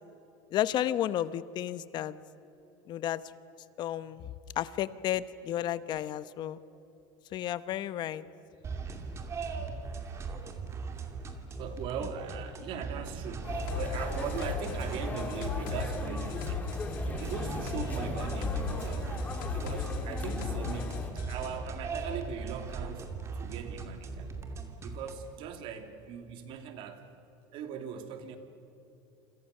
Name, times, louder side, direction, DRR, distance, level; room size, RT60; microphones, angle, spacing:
voice 1, 0.5-2.2 2.9-3.2 3.8-4.2 4.6-6.6 7.3-8.2, left 12 dB, 40° left, 15 dB, 1.0 m, -32 dB
sound 1, 8.6-25.3, right 4 dB, 25° right, 2.6 m, -39 dB
voice 2, 11.6-19.2 19.5-23.1 23.4-24.3 24.8-27.0 27.5-28.4, right 7 dB, 50° right, 6 dB, 3.0 m, -40 dB
sound 2, 13.4-21.1, left 3 dB, 15° left, 3.3 m, -36 dB
sound 3, 13.7-21.5, left 9 dB, 80° left, 2.0 m, -40 dB
27.5 x 27.0 x 6.7 m, 2.8 s
supercardioid pair, 140°, 11 cm